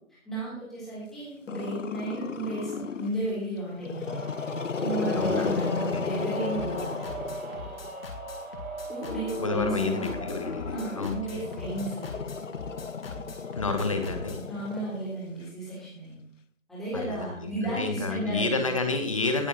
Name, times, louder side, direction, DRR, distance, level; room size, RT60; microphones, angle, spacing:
voice 1, 0.2-4.2 4.7-7.0 8.9-10.1 10.7-12.1 14.5-16.2 16.7-18.7, right 2 dB, ahead, -10 dB, 3.7 m, -34 dB
Growling, 1.5-3.2 3.8-7.9 8.9-15.4, left 6 dB, 65° left, 0.7 m, -34 dB
sound 1, 4.0-14.4, right 2 dB, 80° right, 3.6 m, -40 dB
voice 2, 5.1-5.5 5.9-6.0 9.4-11.5 13.6-14.4 16.9-19.5, left 3 dB, 25° left, 5 dB, 1.0 m, -30 dB
sound 2, 6.5-14.5, left 3 dB, 45° left, 1.9 m, -43 dB
18.0 x 8.1 x 3.1 m, 0.66 s
figure-of-eight pair, 155°, 41 cm